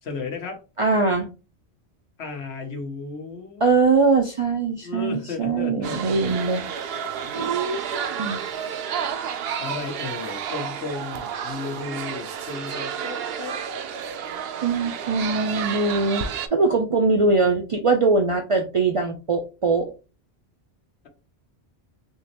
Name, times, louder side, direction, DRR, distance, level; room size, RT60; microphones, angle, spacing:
voice 1, 0.0-0.6 2.2-3.6 4.8-6.3 9.6-13.6, left 4 dB, 85° left, 4 dB, 1.2 m, -34 dB
voice 2, 0.8-1.3 3.6-6.6 7.3-8.4 14.6-19.9, right 3 dB, 50° right, 4 dB, 0.4 m, -22 dB
sound 1, 5.8-16.5, right 7 dB, 70° right, 0.8 m, -31 dB
3.6 x 3.0 x 2.8 m, 0.31 s
omnidirectional pair, 1.1 m